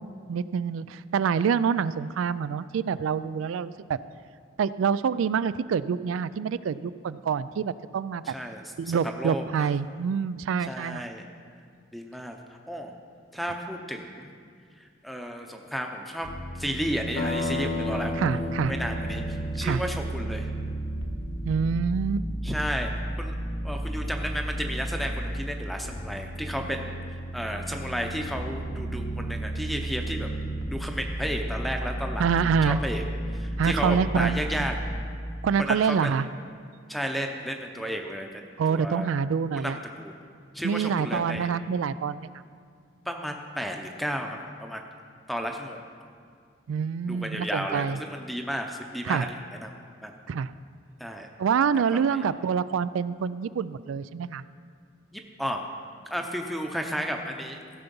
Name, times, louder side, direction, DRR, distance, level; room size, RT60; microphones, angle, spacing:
voice 1, 0.3-4.0 4.6-8.2 8.8-11.1 18.2-18.7 19.6-19.8 21.4-22.3 32.2-32.8 33.6-34.4 35.4-36.3 38.6-39.8 40.6-42.3 46.7-48.0 49.0-49.3 50.3-50.5 51.4-54.4, right 6 dB, 85° right, 16 dB, 0.3 m, -26 dB
voice 2, 8.2-9.7 10.6-11.2 11.9-12.4 12.7-12.9 13.3-14.3 15.0-16.3 16.6-20.5 22.4-23.3 23.6-27.0 27.3-30.3 30.7-32.2 32.6-33.0 33.3-34.7 35.6-36.1 36.9-39.1 39.6-40.1 40.5-41.5 43.1-44.8 45.3-45.8 47.1-49.4 49.6-49.7 50.0-50.1 51.0-51.3 51.7-52.2 55.1-55.7 56.1-57.8, equal, ahead, 3 dB, 0.7 m, -33 dB
sound 1, 16.2-25.4 25.8-35.0, right 1 dB, 70° left, 1.3 m, -33 dB
sound 2, 17.2-21.4, left 2 dB, 85° left, 1.6 m, -33 dB
15.5 x 6.9 x 5.4 m, 2.2 s
head